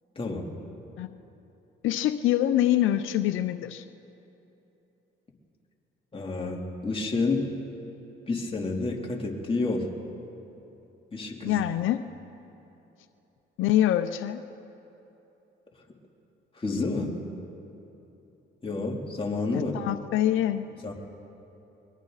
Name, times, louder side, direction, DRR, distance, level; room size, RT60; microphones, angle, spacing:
voice 1, 0.1-0.5 6.1-7.5 8.3-9.9 11.1-11.6 16.6-17.1 18.6-19.7 20.8-20.9, left 3 dB, 25° left, -1 dB, 3.1 m, -29 dB
voice 2, 1.8-3.8 11.4-12.0 13.6-14.4 19.7-20.7, left 12 dB, 85° left, 10 dB, 0.6 m, -25 dB
29.5 x 22.5 x 4.1 m, 3.0 s
cardioid pair, 90°, 20 cm